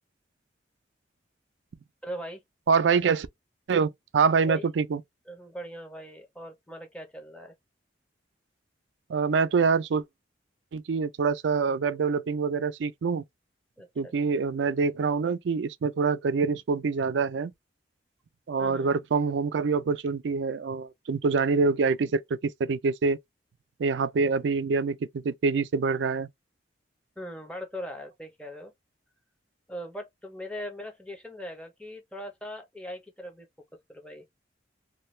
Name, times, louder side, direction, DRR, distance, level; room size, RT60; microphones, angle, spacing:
voice 1, 2.0-2.4 4.5-4.7 5.3-7.5 13.8-14.4 18.6-18.9 27.2-28.7 29.7-33.5 33.9-34.2, equal, 5° left, 0.6 m, -40 dB
voice 2, 2.7-3.3 3.7-5.0 9.1-10.0 10.7-13.2 14.0-17.5 18.5-23.2 23.8-26.3, right 5 dB, 80° right, 0.4 m, -25 dB
2.6 x 2.2 x 3.1 m
head